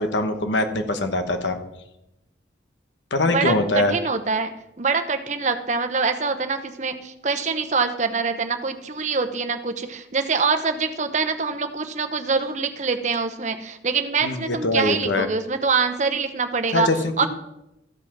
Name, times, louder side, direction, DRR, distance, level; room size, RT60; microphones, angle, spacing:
voice 1, 0.0-1.6 3.1-4.0 14.2-15.3 16.7-17.3, left 2 dB, 75° left, 7 dB, 1.1 m, -23 dB
voice 2, 3.2-4.5 4.8-16.9 17.2-17.3, right 4 dB, 40° right, 7 dB, 0.8 m, -24 dB
14.0 x 5.1 x 5.9 m, 0.88 s
head